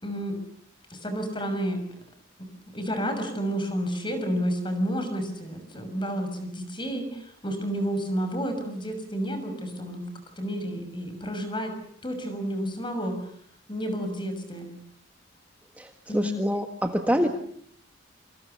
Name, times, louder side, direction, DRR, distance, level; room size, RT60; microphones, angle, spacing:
voice 1, 0.0-0.4 0.9-1.8 2.4-2.5 2.7-10.0 10.4-11.7 12.0-13.2 13.7-14.7 16.1-16.4 17.1-17.3, equal, 25° left, 8 dB, 6.3 m, -30 dB
voice 2, 15.8-17.3, equal, 10° right, 5 dB, 1.6 m, -26 dB
28.0 x 26.5 x 7.0 m, 0.62 s
head